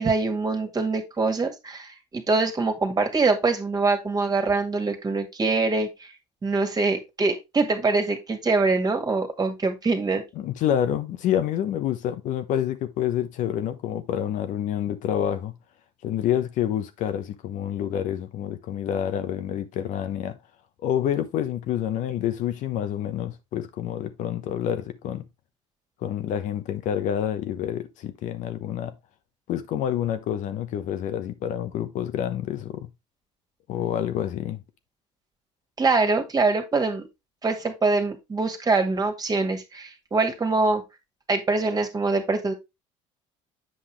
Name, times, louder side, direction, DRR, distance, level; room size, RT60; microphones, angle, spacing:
voice 1, 0.0-6.1 6.4-10.2 35.8-37.1 37.4-40.8 41.3-42.5, right 3 dB, 25° right, 2.0 m, -24 dB
voice 2, 10.4-15.5 16.0-20.4 20.8-25.3 26.0-28.9 29.5-32.9 33.7-34.6, left 10 dB, 65° left, 1.0 m, -28 dB
7.8 x 5.7 x 3.3 m
supercardioid pair, 85°, 14 cm